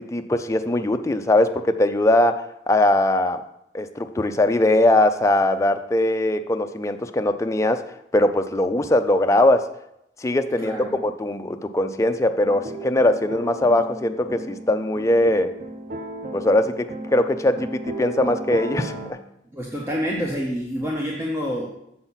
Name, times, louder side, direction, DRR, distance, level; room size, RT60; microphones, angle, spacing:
voice 1, 0.0-3.4 3.7-7.8 8.1-9.7 10.2-15.5 16.3-19.2, left 1 dB, 15° left, 7 dB, 0.4 m, -21 dB
voice 2, 10.6-10.9 19.5-21.7, equal, 15° right, -2 dB, 0.7 m, -27 dB
sound 1, 12.4-19.1, right 2 dB, 50° right, 0.8 m, -35 dB
7.0 x 5.7 x 3.9 m, 0.81 s
head